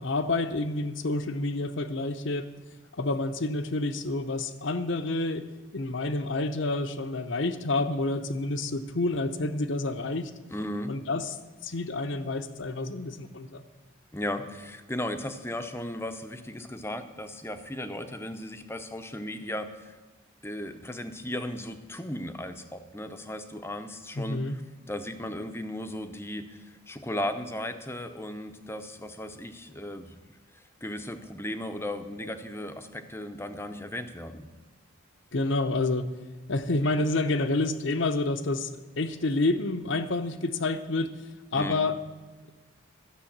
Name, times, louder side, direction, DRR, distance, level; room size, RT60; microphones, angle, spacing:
voice 1, 0.0-2.5 3.0-5.4 5.7-10.3 10.9-11.3 11.6-13.6 24.2-24.6 35.3-36.1 36.5-41.1 41.5-42.0, left 2 dB, 60° left, 10 dB, 0.8 m, -28 dB
voice 2, 10.5-10.9 14.1-20.0 20.4-24.6 24.9-30.1 30.8-34.5 41.5-41.9, left 1 dB, 10° left, 8 dB, 0.7 m, -36 dB
12.5 x 6.9 x 8.7 m, 1.3 s
head